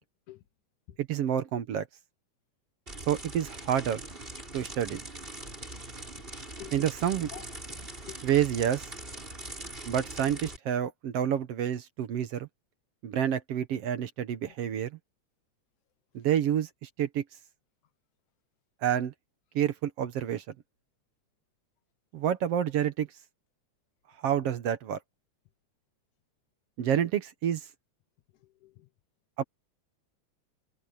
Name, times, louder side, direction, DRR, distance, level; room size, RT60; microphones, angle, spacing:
voice 1, 1.0-1.9 3.1-4.0 4.5-5.0 6.7-7.3 8.2-8.9 9.9-12.5 13.0-14.9 16.1-17.2 18.8-19.1 19.6-20.4 22.1-23.1 24.2-25.0 26.8-27.7 29.4-29.5, right 9 dB, 60° right, 1.9 m, -28 dB
sound 1, 2.9-10.6, right 1 dB, 15° right, 4.7 m, -42 dB
voice 2, 6.2-6.8 7.3-8.2 14.5-14.6 24.4-24.5 28.4-28.9, left 15 dB, 90° left, 2.7 m, -50 dB
omnidirectional pair, 3.3 m